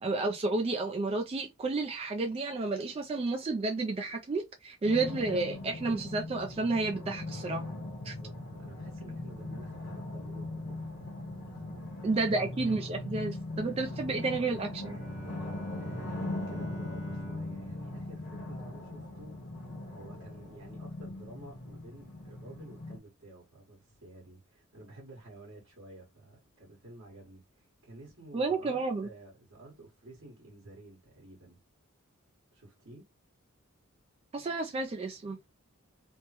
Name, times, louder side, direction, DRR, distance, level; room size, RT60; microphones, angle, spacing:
voice 1, 0.0-7.6 8.0-8.1 12.0-15.0 28.3-29.1 34.3-35.4, right 3 dB, 25° right, 0.3 m, -31 dB
sound 1, 4.8-23.0, left 2 dB, 50° left, 0.8 m, -40 dB
voice 2, 7.9-11.1 11.5-11.6 15.8-19.3 19.9-31.6 32.5-33.0, right 1 dB, 65° right, 1.5 m, -51 dB
Bowed string instrument, 14.8-19.3, right 2 dB, 10° right, 0.9 m, -48 dB
3.3 x 2.1 x 2.9 m
head